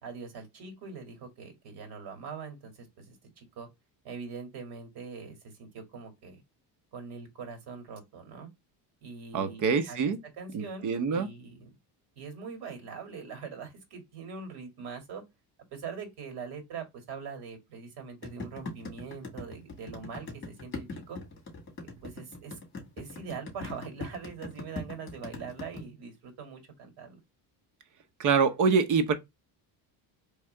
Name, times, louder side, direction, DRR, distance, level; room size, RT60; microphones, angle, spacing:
voice 1, 0.0-3.7 4.0-6.4 6.9-8.5 9.0-11.7 12.2-15.2 15.7-21.2 21.8-22.6 23.0-27.2, right 5 dB, 65° right, 2.2 m, -42 dB
voice 2, 9.3-10.2 10.5-11.3 28.2-29.1, right 5 dB, 45° right, 0.8 m, -25 dB
sound 1, 18.2-25.8, left 3 dB, 30° left, 2.3 m, -40 dB
3.7 x 3.3 x 3.2 m
cardioid pair, 150°, 41 cm